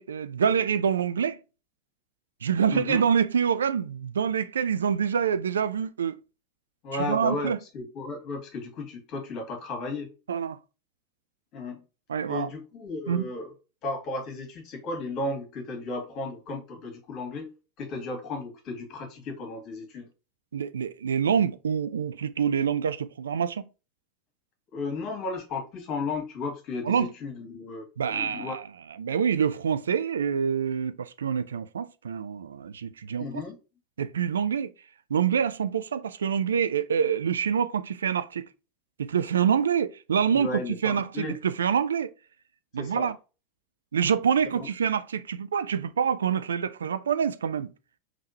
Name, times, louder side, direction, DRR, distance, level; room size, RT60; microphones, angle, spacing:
voice 1, 0.0-1.4 2.4-6.2 6.9-7.6 10.3-10.6 12.1-12.5 13.1-13.3 20.5-23.7 26.9-27.1 28.0-28.6 29.0-33.3 34.0-34.7 35.1-38.4 39.0-42.1 42.7-43.1 43.9-47.7, right 7 dB, 80° right, 0.3 m, -26 dB
voice 2, 2.7-3.0 6.8-10.1 11.5-11.8 12.3-13.5 13.8-17.5 17.8-20.1 24.7-28.5 33.2-33.6 40.3-41.4 42.8-43.1 44.5-44.7, left 3 dB, 45° left, 1.7 m, -34 dB
3.6 x 3.2 x 2.7 m
figure-of-eight pair, 85°, 0 cm